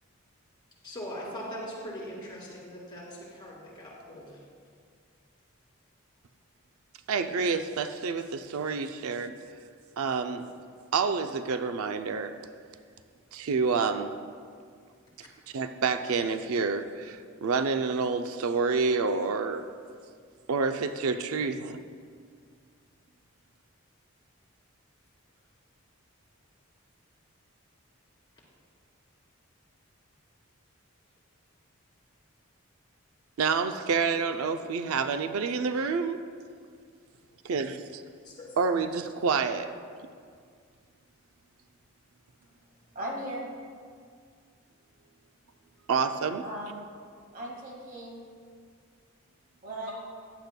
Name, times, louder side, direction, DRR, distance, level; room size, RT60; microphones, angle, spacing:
voice 1, 0.8-4.4 38.2-38.5, equal, 20° left, -5 dB, 2.4 m, -41 dB
voice 2, 7.1-9.4 10.0-10.4 10.9-12.3 13.3-14.1 15.5-19.7 20.5-21.8 33.4-36.2 37.4-38.0 38.6-39.7 45.9-46.4, right 5 dB, 85° right, 8 dB, 0.4 m, -28 dB
voice 3, 42.9-43.5 46.4-46.8 47.3-48.2 49.6-50.0, right 1 dB, 40° right, -1 dB, 1.7 m, -37 dB
14.5 x 10.0 x 2.2 m, 2.1 s
head